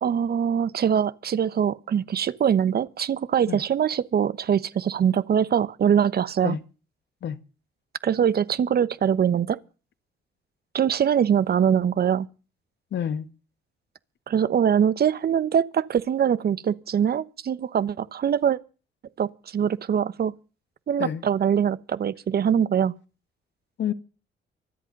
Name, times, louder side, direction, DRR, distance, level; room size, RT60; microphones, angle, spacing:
voice 1, 0.0-6.6 8.0-9.6 10.7-12.3 14.3-18.6 19.2-20.3 20.9-22.9, right 8 dB, 50° right, 1.1 m, -23 dB
voice 2, 12.9-13.3 21.0-21.2 23.8-23.9, left 9 dB, 65° left, 1.6 m, -28 dB
24.5 x 8.3 x 5.4 m
cardioid pair, 90°, 20 cm